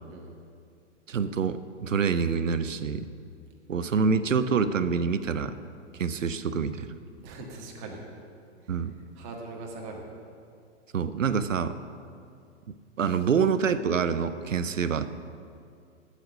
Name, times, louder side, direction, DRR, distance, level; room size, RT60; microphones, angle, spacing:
voice 1, 1.1-3.1 3.7-5.6 6.0-6.9 8.7-8.9 10.9-11.7 13.0-15.1, right 6 dB, 85° right, 12 dB, 0.5 m, -26 dB
voice 2, 7.2-8.0 8.6-8.8 9.1-10.1, right 3 dB, 35° right, 0 dB, 1.6 m, -41 dB
8.2 x 7.5 x 6.4 m, 2.4 s
figure-of-eight pair, 105°, 37 cm